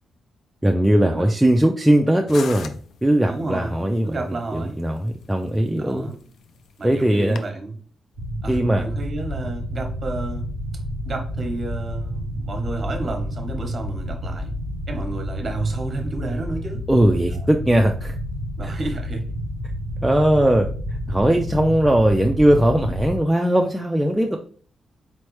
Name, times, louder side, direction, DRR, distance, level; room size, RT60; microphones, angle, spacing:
voice 1, 0.6-4.2 4.5-6.1 6.8-7.4 8.5-8.9 16.9-18.1 18.6-18.7 20.0-24.4, right 1 dB, 5° right, 1 dB, 0.3 m, -19 dB
sound 1, 2.3-7.5, left 6 dB, 65° left, 0.4 m, -42 dB
voice 2, 3.3-4.8 5.8-6.2 6.8-7.7 8.4-10.5 11.0-14.5 14.9-16.8 18.6-19.3, right 2 dB, 35° right, 3 dB, 1.0 m, -31 dB
sound 2, 8.1-23.2, equal, 85° left, 1.9 m, -30 dB
4.2 x 3.1 x 3.1 m, 0.43 s
wide cardioid pair, 145°, 0 cm